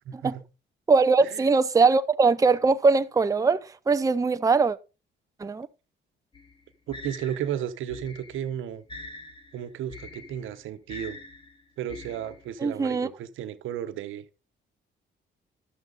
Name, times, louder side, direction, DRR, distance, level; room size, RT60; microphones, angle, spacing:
voice 1, 0.1-0.4 1.2-1.5 6.9-8.8 9.5-11.2 11.8-14.4, right 10 dB, 80° right, 1.1 m, -34 dB
voice 2, 0.9-4.8 5.4-5.7 12.6-13.1, right 4 dB, 15° right, 0.6 m, -21 dB
sound 1, 6.3-12.7, left 3 dB, 25° left, 1.7 m, -45 dB
12.5 x 7.2 x 3.9 m
cardioid pair, 90°, 20 cm